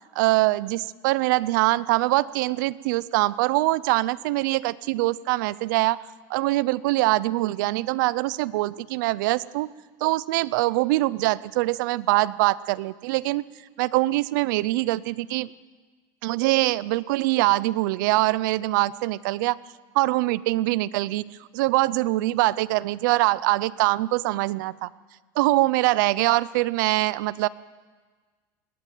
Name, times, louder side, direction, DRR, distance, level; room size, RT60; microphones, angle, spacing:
voice 1, 0.1-6.0 6.3-9.7 10.0-13.4 13.8-15.5 16.2-19.6 19.9-21.3 21.5-24.9 25.4-27.5, right 19 dB, 75° right, 20 dB, 0.6 m, -23 dB
20.5 x 17.0 x 9.2 m, 1.4 s
cardioid pair, 165°, 10 cm